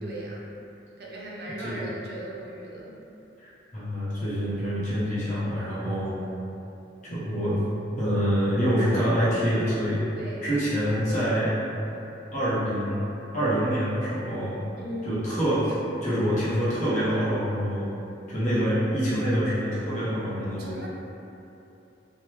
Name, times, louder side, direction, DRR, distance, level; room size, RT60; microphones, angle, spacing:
voice 1, 0.0-0.5 1.0-3.0 10.1-10.5 14.8-15.2 20.6-20.9, right 1 dB, 55° right, -5 dB, 0.5 m, -37 dB
voice 2, 3.4-6.2 7.1-7.6 7.9-10.0 10.4-11.5 12.3-13.0 13.3-14.6 15.0-15.7 16.0-17.9 18.3-20.7, equal, 40° left, -10 dB, 0.8 m, -26 dB
3.1 x 2.3 x 2.7 m, 2.9 s
head